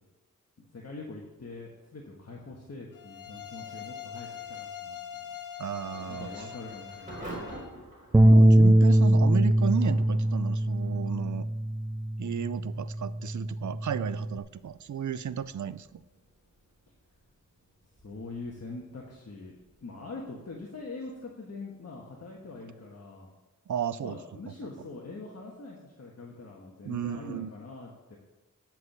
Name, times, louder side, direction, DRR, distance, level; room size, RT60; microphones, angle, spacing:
voice 1, 0.7-5.3 6.1-7.3 18.0-23.3 24.0-28.2, left 3 dB, 50° left, -2 dB, 1.5 m, -43 dB
sound 1, 2.9-7.7, left 9 dB, 85° left, 0.9 m, -43 dB
Thunder / Rain, 5.6-22.3, right 1 dB, 25° right, 4.1 m, -50 dB
voice 2, 5.6-6.5 8.2-11.5 12.2-16.0 23.7-24.2 24.5-24.6 26.8-27.5, right 8 dB, 65° right, 16 dB, 0.5 m, -33 dB
sound 2, 8.1-14.4, right 1 dB, 10° right, 0.4 m, -22 dB
9.6 x 6.0 x 6.7 m, 1.1 s
wide cardioid pair, 80°, 31 cm